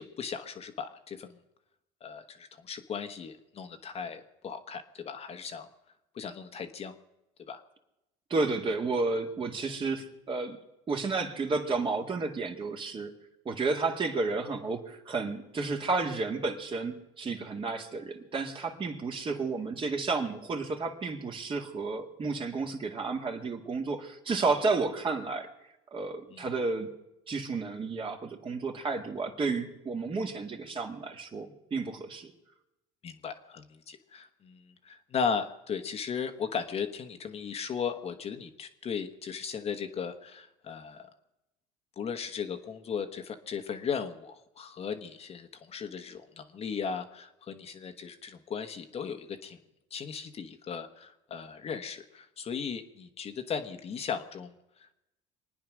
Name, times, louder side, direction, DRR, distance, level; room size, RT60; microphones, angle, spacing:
voice 1, 0.0-1.4 2.0-5.7 6.1-6.9 7.5-7.6 26.3-26.5 33.0-41.1 42.0-49.6 49.9-54.9, left 6 dB, 40° left, 7 dB, 1.2 m, -37 dB
voice 2, 8.3-10.6 10.9-13.1 13.5-25.5 25.9-26.9 27.3-32.3, right 3 dB, 35° right, 3 dB, 2.0 m, -32 dB
24.5 x 9.6 x 6.2 m, 0.93 s
supercardioid pair, 95°, 16 cm